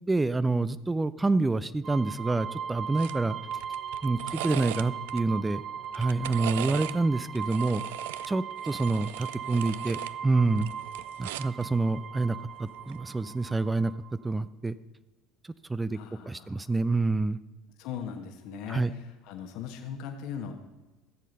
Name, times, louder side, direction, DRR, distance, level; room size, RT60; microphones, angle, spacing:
voice 1, 0.1-3.4 4.0-5.6 5.9-7.8 8.3-10.7 11.2-13.9 14.2-14.7 15.7-16.0 16.2-17.4 18.7-18.9, right 3 dB, 15° right, 15 dB, 0.4 m, -27 dB
sound 1, 1.8-14.3, right 8 dB, 40° right, 0.8 m, -38 dB
sound 2, 3.0-3.2 3.5-5.2 5.8-7.0 7.3-10.1 10.5-11.6 12.8-13.0, right 14 dB, 75° right, 0.4 m, -39 dB
voice 2, 15.9-16.7 17.8-20.5, left 7 dB, 65° left, 4 dB, 1.3 m, -39 dB
15.0 x 7.5 x 5.4 m, 1.1 s
hypercardioid pair, 75°, 0 cm